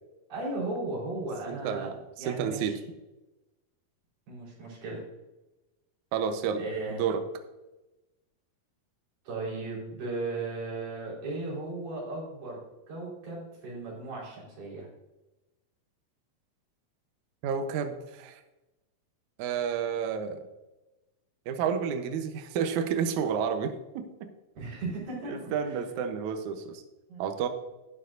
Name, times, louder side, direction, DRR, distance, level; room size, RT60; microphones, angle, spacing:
voice 1, 0.3-1.9 2.2-2.8 4.3-5.0 6.6-7.0 9.2-12.6 12.9-14.9 24.6-25.8 27.1-27.2, right 2 dB, 65° right, -6 dB, 6.0 m, -36 dB
voice 2, 1.5-2.8 6.1-6.6 6.9-7.2 17.4-18.4 19.4-20.4 21.5-24.3 25.3-26.8 27.2-27.5, right 7 dB, 85° right, 7 dB, 1.7 m, -30 dB
12.0 x 11.0 x 2.6 m, 1.0 s
omnidirectional pair, 4.6 m